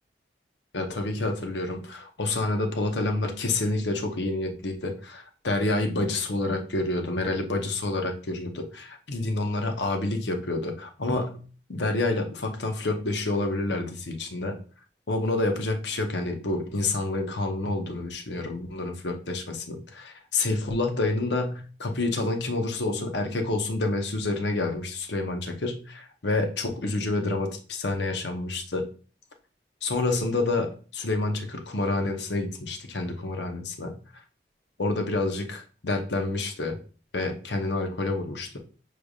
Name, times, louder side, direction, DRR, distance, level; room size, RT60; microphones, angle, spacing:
voice 1, 0.7-11.4 11.7-14.6 15.1-28.9 29.8-33.9 34.8-36.8 37.1-38.6, left 2 dB, 85° left, 4 dB, 0.9 m, -28 dB
6.4 x 3.3 x 2.4 m, 0.38 s
head